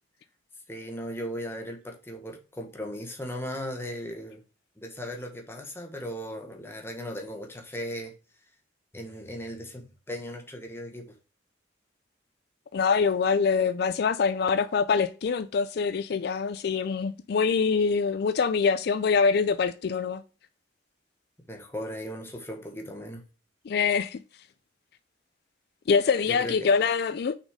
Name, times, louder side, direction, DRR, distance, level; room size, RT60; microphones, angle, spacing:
voice 1, 0.7-4.4 4.8-8.1 8.9-11.1 21.5-23.2 26.3-26.7, equal, 15° left, 1.3 m, -37 dB
voice 2, 12.7-20.2 23.7-24.2 25.9-27.3, left 5 dB, 55° left, 0.3 m, -24 dB
6.1 x 4.2 x 4.9 m
head